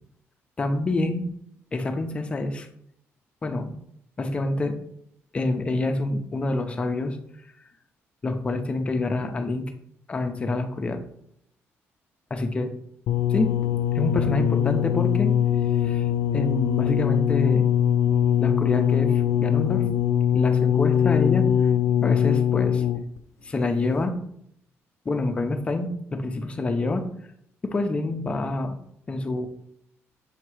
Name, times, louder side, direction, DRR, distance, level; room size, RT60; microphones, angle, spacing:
voice 1, 0.6-1.3 1.7-2.7 3.4-3.7 4.2-4.8 5.3-7.2 8.2-9.7 10.1-11.0 12.3-12.7 13.3-13.6 13.9-15.3 15.8-16.1 16.3-17.7 18.4-19.8 20.3-21.5 22.0-22.8 23.4-24.2 25.1-27.1 27.6-28.8 29.1-29.5, left 2 dB, 25° left, 6 dB, 0.6 m, -27 dB
sound 1, 13.1-23.2 24.0-24.1, left 9 dB, 75° left, 0.3 m, -22 dB
7.1 x 2.9 x 4.8 m, 0.72 s
cardioid pair, 155°, 5 cm